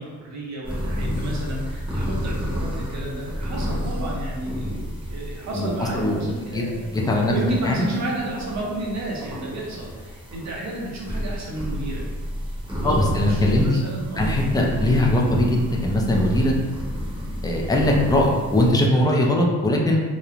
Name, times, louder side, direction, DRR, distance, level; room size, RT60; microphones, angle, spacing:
voice 1, 0.0-6.9 7.3-12.0 12.8-14.3, right 1 dB, 60° right, -3 dB, 0.7 m, -31 dB
sound 1, 0.6-18.7, equal, 15° right, 0.7 m, -31 dB
voice 2, 5.9-6.6 6.9-7.3 7.6-7.9 12.8-13.8 14.2-16.5 17.4-20.0, left 1 dB, 15° left, -1 dB, 0.3 m, -20 dB
3.0 x 2.0 x 2.4 m, 1.4 s
wide cardioid pair, 125°, 31 cm